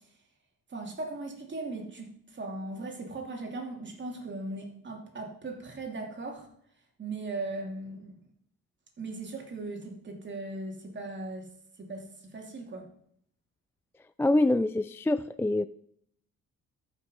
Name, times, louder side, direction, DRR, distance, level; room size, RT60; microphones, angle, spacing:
voice 1, 0.7-6.5 7.0-8.2 9.0-11.5 11.8-12.9, right 2 dB, 40° right, 1 dB, 2.9 m, -38 dB
voice 2, 14.2-15.7, left 2 dB, 10° left, 13 dB, 0.3 m, -25 dB
13.5 x 6.1 x 5.6 m, 0.69 s
cardioid pair, 90°, 30 cm